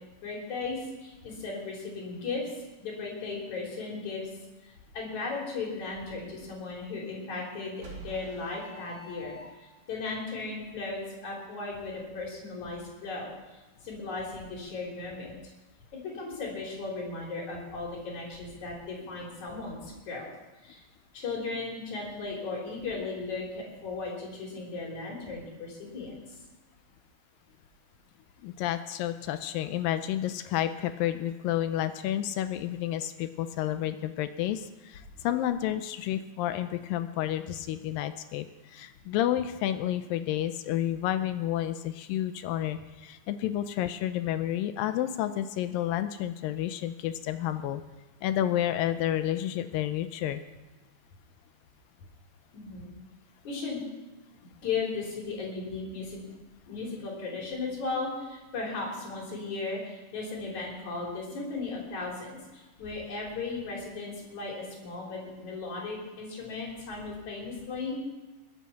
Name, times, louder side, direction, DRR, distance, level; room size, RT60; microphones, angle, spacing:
voice 1, 0.2-4.3 4.9-15.5 15.9-20.3 20.6-20.8 21.1-26.2 52.5-52.9 53.4-53.8 54.6-56.3 56.7-68.0, left 3 dB, 50° left, -2 dB, 4.8 m, -36 dB
sound 1, 7.8-9.9, right 2 dB, 40° right, 4.6 m, -46 dB
voice 2, 28.4-47.8 48.2-50.4, left 12 dB, 80° left, 10 dB, 2.1 m, -30 dB
21.5 x 8.3 x 5.9 m, 1.1 s
omnidirectional pair, 4.4 m